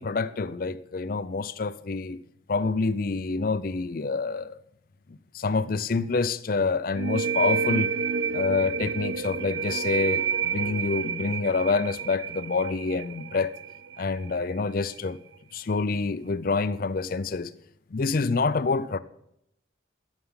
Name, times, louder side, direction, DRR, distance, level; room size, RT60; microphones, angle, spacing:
voice 1, 0.0-2.2 2.5-4.5 5.1-7.9 8.3-13.5 14.0-15.2 15.5-17.5 17.9-19.0, left 4 dB, 45° left, 0.5 m, -27 dB
sound 1, 7.0-14.4, right 6 dB, 65° right, 0.5 m, -29 dB
13.0 x 7.1 x 5.7 m
head